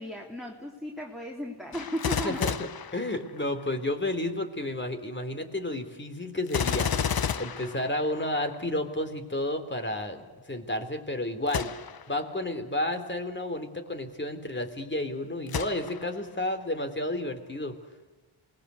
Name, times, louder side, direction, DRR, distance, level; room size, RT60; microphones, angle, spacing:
voice 1, 0.0-2.4, equal, ahead, -1 dB, 3.3 m, -35 dB
Gunshot gunfire, 1.7-3.7 6.5-8.5 11.5-12.1 12.7-12.8 15.5-16.2 16.8-16.9, left 7 dB, 45° left, 1.0 m, -32 dB
voice 2, 2.2-10.2 10.5-11.7 12.1-17.7, left 1 dB, 20° left, 7 dB, 3.4 m, -31 dB
27.5 x 20.0 x 8.2 m, 1.2 s
wide cardioid pair, 95°, 49 cm